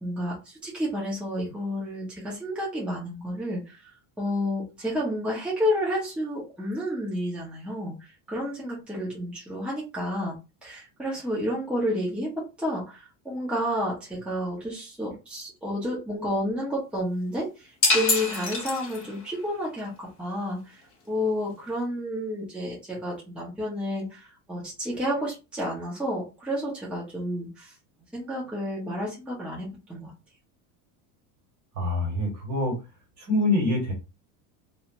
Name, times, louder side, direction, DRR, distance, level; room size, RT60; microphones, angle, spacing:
voice 1, 0.0-3.9 4.2-10.3 10.6-20.8 21.1-27.7 28.1-30.1, equal, 5° right, -5 dB, 1.0 m, -30 dB
sound 1, 17.8-19.3, left 3 dB, 30° left, 1.1 m, -25 dB
voice 2, 31.8-32.8 33.2-33.9, left 2 dB, 40° right, 1 dB, 1.8 m, -25 dB
2.8 x 2.4 x 2.9 m, 0.28 s
supercardioid pair, 125°, 44 cm